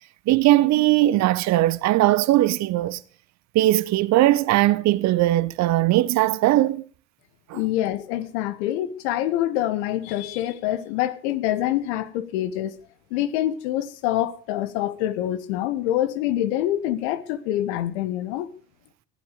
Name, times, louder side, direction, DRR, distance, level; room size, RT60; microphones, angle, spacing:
voice 1, 0.3-3.0 3.5-6.8 7.5-7.6, right 16 dB, 45° right, 0.8 m, -19 dB
voice 2, 7.5-12.8 13.1-18.5, left 13 dB, 65° left, 1.4 m, -26 dB
16.0 x 12.0 x 5.1 m
figure-of-eight pair, 65°, 37 cm